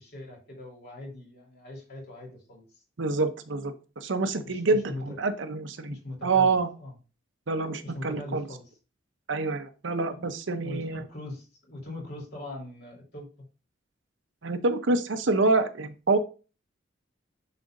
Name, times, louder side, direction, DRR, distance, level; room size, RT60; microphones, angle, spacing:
voice 1, 0.0-2.8 4.4-5.1 5.9-6.9 7.8-8.6 10.1-13.3, left 1 dB, 55° left, -1 dB, 3.2 m, -41 dB
voice 2, 3.0-6.0 6.2-6.7 7.5-8.4 9.3-11.0 14.4-16.2, right 3 dB, 65° right, 9 dB, 0.7 m, -26 dB
9.9 x 4.0 x 2.6 m, 0.33 s
head